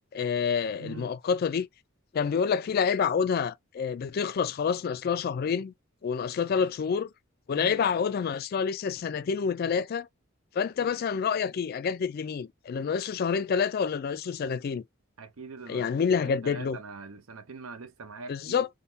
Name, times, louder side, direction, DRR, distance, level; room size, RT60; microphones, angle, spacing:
voice 1, 0.1-1.7 2.1-5.7 6.0-7.1 7.5-10.1 10.5-14.8 15.7-16.8 18.3-18.7, left 6 dB, 45° left, 0.3 m, -28 dB
voice 2, 0.8-1.1 7.5-7.8 10.8-11.0 15.2-18.7, right 4 dB, 85° right, 0.7 m, -43 dB
3.5 x 2.2 x 2.7 m
head